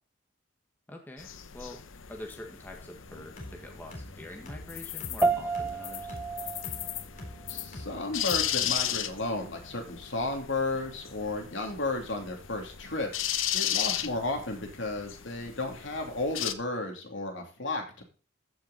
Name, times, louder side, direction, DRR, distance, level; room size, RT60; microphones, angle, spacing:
voice 1, 0.9-1.8 2.1-6.2, left 1 dB, 10° left, 1 dB, 1.6 m, -45 dB
sound 1, 1.2-16.5, left 11 dB, 85° left, 0.9 m, -36 dB
sound 2, 3.0-8.8, left 1 dB, 40° left, 3.7 m, -46 dB
sound 3, 5.2-14.8, right 3 dB, 10° right, 0.5 m, -36 dB
voice 2, 7.5-13.1 13.5-18.0, left 2 dB, 70° left, 2 dB, 3.0 m, -33 dB
14.5 x 6.1 x 4.1 m, 0.36 s
head